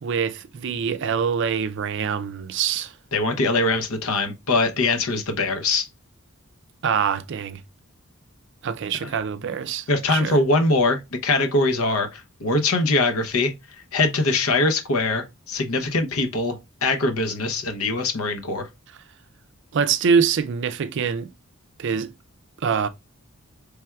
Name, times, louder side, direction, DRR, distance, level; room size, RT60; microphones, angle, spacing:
voice 1, 0.0-2.9 6.8-7.6 8.6-10.4 19.7-21.3 21.8-22.1 22.6-22.9, right 6 dB, 55° right, 0.4 m, -24 dB
voice 2, 3.1-5.9 9.9-13.5 13.9-16.5 16.8-18.7, left 2 dB, 90° left, 0.8 m, -22 dB
4.4 x 3.4 x 2.3 m
head